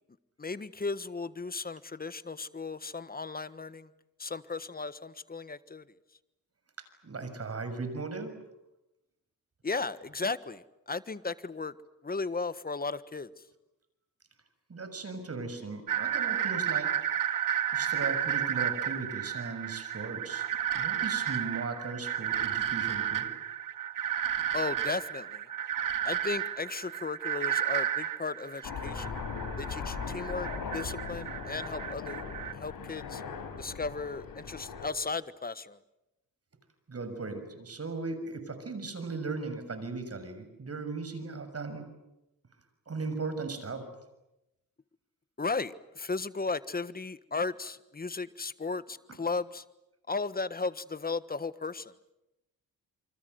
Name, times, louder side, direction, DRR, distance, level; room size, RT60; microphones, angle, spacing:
voice 1, 0.4-3.9 4.2-5.9 9.6-11.7 12.0-13.3 24.5-25.5 26.0-29.1 29.6-32.2 32.5-33.2 33.6-35.8 45.4-49.6 50.1-51.9, left 4 dB, 25° left, 14 dB, 1.4 m, -35 dB
voice 2, 7.0-8.3 14.7-16.9 17.7-20.4 20.7-23.3 36.9-41.9 42.9-43.9, right 3 dB, 45° right, 9 dB, 6.6 m, -37 dB
sound 1, 15.9-32.5, right 10 dB, 65° right, 2.1 m, -32 dB
Aircraft, 28.6-34.9, left 5 dB, 70° left, 4.7 m, -39 dB
27.5 x 25.0 x 8.0 m, 0.92 s
cardioid pair, 80°, 35 cm